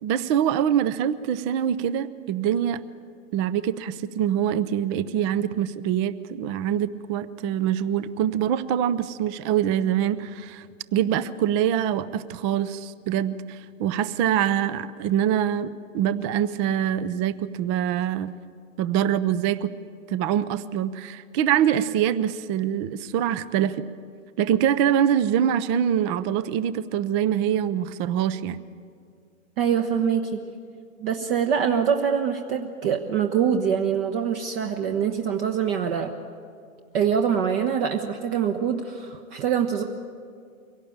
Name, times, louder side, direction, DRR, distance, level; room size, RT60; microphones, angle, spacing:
voice 1, 0.0-2.8 3.3-10.6 10.9-18.3 18.8-19.7 20.1-23.8 24.4-28.6, right 10 dB, 20° right, 15 dB, 0.5 m, -24 dB
voice 2, 29.6-30.4 31.0-36.1 36.9-39.8, right 7 dB, 45° right, 5 dB, 1.3 m, -24 dB
23.5 x 17.5 x 8.7 m, 2.2 s
hypercardioid pair, 135°, 41 cm